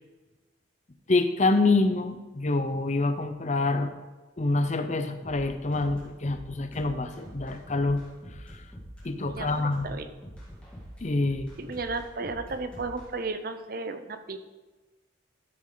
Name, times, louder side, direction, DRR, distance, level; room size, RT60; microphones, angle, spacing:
voice 1, 1.1-3.9 4.4-8.0 8.5-8.6 9.0-9.9 11.0-11.5, left 2 dB, 35° left, 8 dB, 0.7 m, -26 dB
sound 1, 5.2-13.1, equal, 5° left, 2.2 m, -45 dB
voice 2, 9.3-10.1 11.6-14.4, right 3 dB, 50° right, 9 dB, 0.7 m, -34 dB
13.0 x 6.4 x 3.9 m, 1.2 s
head